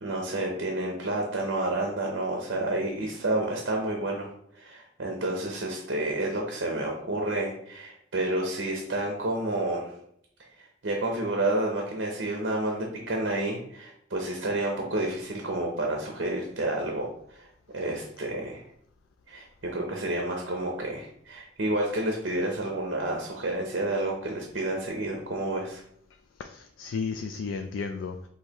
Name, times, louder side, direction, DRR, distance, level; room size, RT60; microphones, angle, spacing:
voice 1, 0.0-4.3 4.5-9.9 10.6-17.5 17.7-18.6 19.3-25.8, right 2 dB, 65° right, 0 dB, 0.7 m, -30 dB
voice 2, 26.4-28.3, left 5 dB, 80° left, 6 dB, 0.3 m, -33 dB
6.2 x 2.8 x 2.9 m, 0.70 s
head